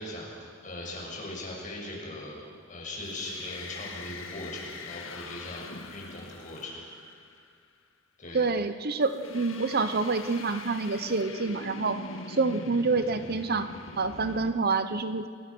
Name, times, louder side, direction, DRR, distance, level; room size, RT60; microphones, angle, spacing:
voice 1, 0.0-2.3 2.7-5.6 5.9-6.8 8.2-8.5, left 1 dB, 40° left, -2 dB, 6.5 m, -39 dB
sound 1, 3.1-7.5 9.0-14.5, left 3 dB, 80° left, 1.9 m, -43 dB
voice 2, 8.3-12.0 12.3-13.7 14.0-15.3, right 4 dB, 50° right, 11 dB, 0.9 m, -27 dB
29.0 x 21.0 x 6.2 m, 2.2 s
head